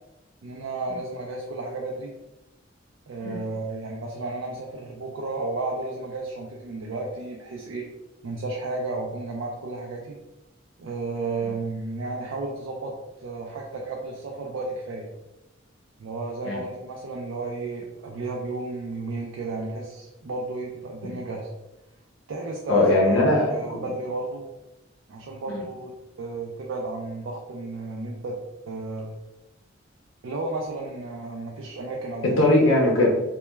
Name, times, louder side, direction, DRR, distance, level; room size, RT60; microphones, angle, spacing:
voice 1, 0.4-2.1 3.1-7.9 8.2-10.2 10.8-15.1 16.0-21.5 22.3-23.2 23.5-24.4 25.1-28.4 28.7-29.2 30.2-32.5, right 3 dB, 80° right, -1 dB, 0.4 m, -33 dB
voice 2, 22.7-23.8 25.5-25.6 32.4-33.1, left 1 dB, 80° left, -2 dB, 0.5 m, -20 dB
2.2 x 2.2 x 3.0 m, 0.98 s
head